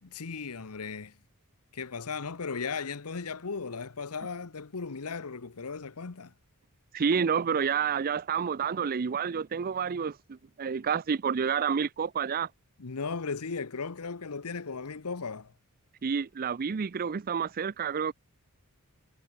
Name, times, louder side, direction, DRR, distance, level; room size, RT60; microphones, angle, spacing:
voice 1, 0.0-1.2 1.7-6.3 12.8-15.5, left 5 dB, 85° left, 1.0 m, -36 dB
voice 2, 6.9-12.5 16.0-18.1, right 6 dB, 40° right, 0.4 m, -29 dB
head